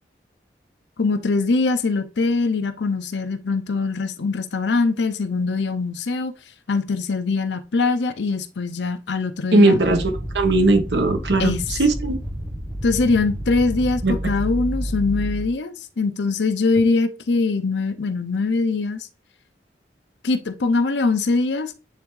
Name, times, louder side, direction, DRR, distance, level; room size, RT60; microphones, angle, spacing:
voice 1, 1.0-6.3 6.7-9.7 11.4-11.6 12.8-19.1 20.2-21.7, left 3 dB, 90° left, 0.7 m, -22 dB
voice 2, 9.5-10.1 10.3-12.1 14.0-14.1, right 2 dB, 85° right, 1.2 m, -18 dB
sound 1, 9.7-15.5, equal, ahead, 0.9 m, -30 dB
9.3 x 3.4 x 3.2 m
head